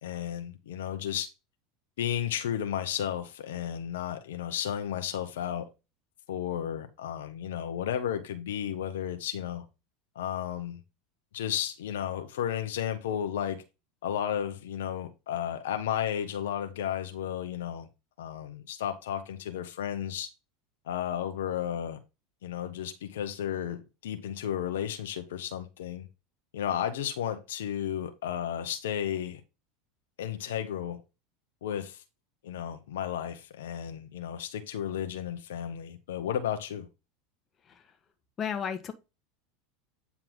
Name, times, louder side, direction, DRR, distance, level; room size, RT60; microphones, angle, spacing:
voice 1, 0.0-1.3 2.0-5.7 6.3-9.6 10.1-10.8 11.3-13.6 14.0-17.9 18.2-20.3 20.9-22.0 22.4-26.1 26.5-29.4 30.2-31.0 31.6-32.0 32.4-36.9, left 10 dB, 80° left, 1.3 m, -33 dB
voice 2, 38.4-38.9, left 7 dB, 35° left, 1.5 m, -33 dB
9.6 x 4.5 x 3.8 m
hypercardioid pair, 100°, 0 cm